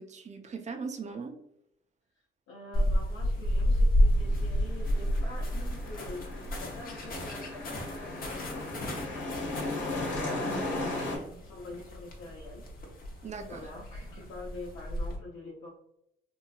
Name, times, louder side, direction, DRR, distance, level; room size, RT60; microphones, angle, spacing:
voice 1, 0.0-1.4 10.4-10.6 13.2-13.7, right 5 dB, 35° right, 6 dB, 0.5 m, -39 dB
voice 2, 2.5-12.6 13.5-15.7, left 2 dB, 85° left, -6 dB, 0.8 m, -46 dB
sound 1, 2.7-15.2, equal, 45° left, 0.8 m, -31 dB
sound 2, 4.1-11.2, left 2 dB, 70° left, 1.1 m, -37 dB
3.0 x 2.7 x 2.3 m, 0.78 s
cardioid pair, 90°, 20 cm